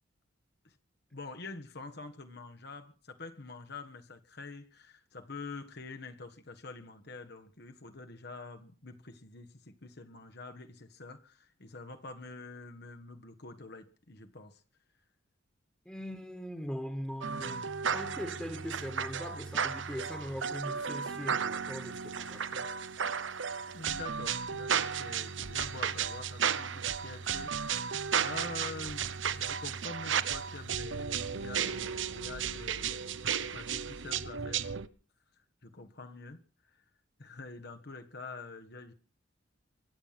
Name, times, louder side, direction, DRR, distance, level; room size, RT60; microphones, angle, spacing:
voice 1, 1.1-14.6 23.7-34.7 35.6-36.4 36.7-36.8 37.2-38.9, left 3 dB, 60° left, 1.6 m, -46 dB
voice 2, 15.8-22.7, equal, 5° left, 1.7 m, -41 dB
sound 1, 17.2-34.9, right 7 dB, 75° right, 0.9 m, -34 dB
24.0 x 9.2 x 5.8 m
head